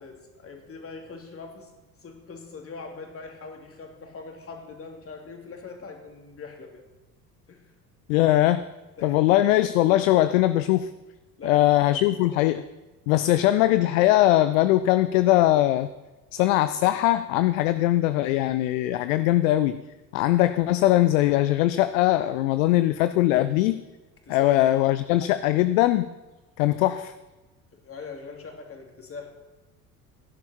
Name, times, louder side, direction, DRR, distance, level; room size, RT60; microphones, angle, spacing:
voice 1, 0.0-1.7 2.0-6.8 7.5-7.6 9.0-9.2 11.4-12.2 24.2-24.7 27.7-29.3, left 4 dB, 25° left, 2 dB, 2.8 m, -42 dB
voice 2, 8.1-8.7 9.0-10.9 11.4-12.6 13.1-15.9 16.3-19.8 20.1-23.8 24.3-26.1 26.6-27.1, left 15 dB, 55° left, 13 dB, 0.7 m, -21 dB
17.0 x 10.5 x 4.4 m, 1.1 s
figure-of-eight pair, 70°, 49 cm